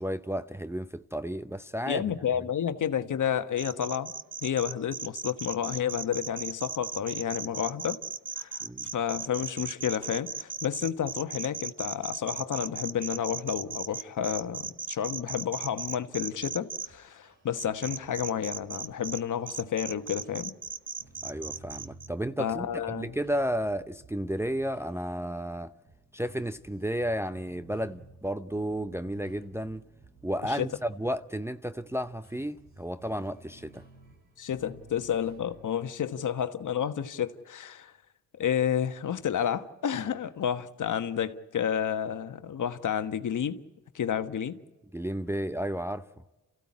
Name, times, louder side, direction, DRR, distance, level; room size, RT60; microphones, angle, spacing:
voice 1, 0.0-2.0 8.6-8.9 21.2-25.7 26.1-29.8 30.2-33.8 44.9-46.1, equal, 5° right, 0.7 m, -32 dB
voice 2, 1.9-4.1 4.4-8.0 8.4-8.6 8.9-20.5 22.4-23.1 30.5-30.7 34.4-37.9 38.4-43.6 43.9-44.6, left 9 dB, 55° left, 1.4 m, -30 dB
sound 1, 3.6-16.9 17.6-19.2 19.5-22.1, right 6 dB, 30° right, 1.0 m, -37 dB
sound 2, 16.9-18.2 18.6-19.3 19.9-35.6, right 2 dB, 65° right, 4.4 m, -55 dB
28.0 x 15.5 x 8.6 m
supercardioid pair, 65°, 37 cm